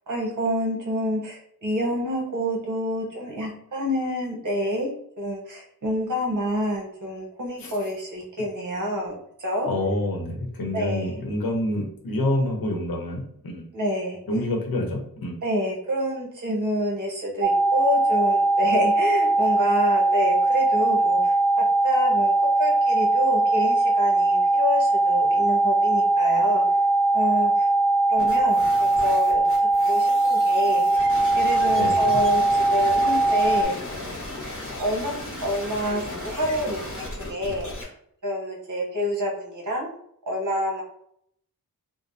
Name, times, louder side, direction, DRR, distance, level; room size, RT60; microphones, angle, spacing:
voice 1, 0.1-4.9 5.2-9.2 9.4-9.7 10.7-11.2 13.7-14.2 15.4-22.3 22.6-26.6 27.1-27.7 28.1-29.4 29.9-30.8 31.3-34.1 34.8-35.1 35.4-37.7 38.2-39.9 40.3-40.8, equal, 55° right, -1 dB, 0.9 m, -28 dB
voice 2, 9.7-13.6 14.3-15.4 31.7-32.2, left 1 dB, 70° left, 1 dB, 0.8 m, -27 dB
sound 1, 17.4-33.6, right 2 dB, 30° right, 0.8 m, -20 dB
sound 2, 28.2-37.8, left 1 dB, 35° left, 1.1 m, -36 dB
3.1 x 2.1 x 2.6 m, 0.69 s
wide cardioid pair, 75°, 37 cm